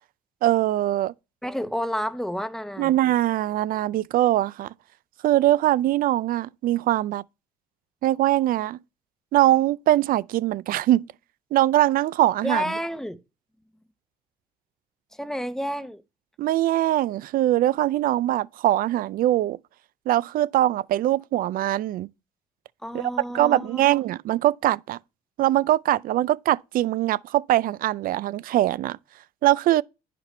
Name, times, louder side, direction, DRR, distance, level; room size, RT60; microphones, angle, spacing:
voice 1, 0.4-1.1 2.8-4.7 5.2-7.2 8.0-8.8 9.3-11.0 11.5-12.6 16.4-19.6 20.1-22.1 22.9-23.0 23.3-25.0 25.4-29.0 29.4-29.8, right 14 dB, 60° right, 0.4 m, -22 dB
voice 2, 1.4-3.0 12.4-13.2 15.1-16.0 22.8-23.9, equal, 5° left, 0.8 m, -30 dB
10.5 x 5.1 x 4.3 m
cardioid pair, 110°, 17 cm